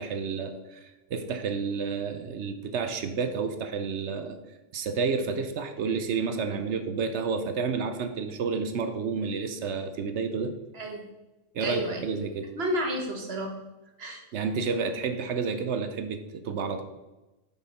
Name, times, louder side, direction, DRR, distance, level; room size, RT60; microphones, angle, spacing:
voice 1, 0.0-4.4 4.7-10.5 11.5-12.5 14.3-16.8, right 5 dB, 65° right, 8 dB, 0.7 m, -30 dB
voice 2, 10.7-11.0 11.6-12.1 12.5-13.5 14.0-14.2, right 1 dB, 45° right, 1 dB, 1.2 m, -31 dB
7.1 x 5.6 x 4.1 m, 1.0 s
omnidirectional pair, 1.7 m